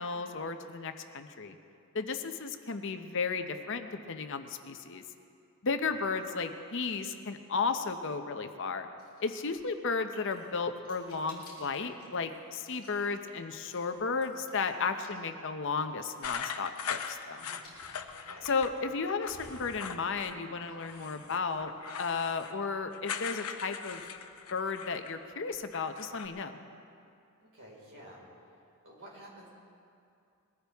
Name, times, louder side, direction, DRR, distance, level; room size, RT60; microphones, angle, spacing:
voice 1, 0.0-1.6 1.9-5.0 5.6-8.9 9.2-17.5 18.4-21.7 22.0-24.0 24.5-26.6, left 4 dB, 55° left, 8 dB, 0.7 m, -34 dB
sound 1, 9.0-21.5 21.7-21.9, left 2 dB, 20° left, 4.6 m, -59 dB
sound 2, 10.9-11.4 11.9-12.3 13.8-13.9 16.6-17.1 17.4-17.7 18.5-19.6 20.1-21.6 22.1-22.6 23.0-23.1, equal, 20° right, 2.5 m, -59 dB
sound 3, 16.2-18.7 19.1-20.4 20.7-25.2 25.5-26.3, left 7 dB, 90° left, 0.8 m, -41 dB
voice 2, 18.1-18.5 27.4-28.2 28.8-29.5, right 1 dB, 60° right, -4 dB, 4.6 m, -51 dB
21.5 x 14.5 x 3.5 m, 2.5 s
head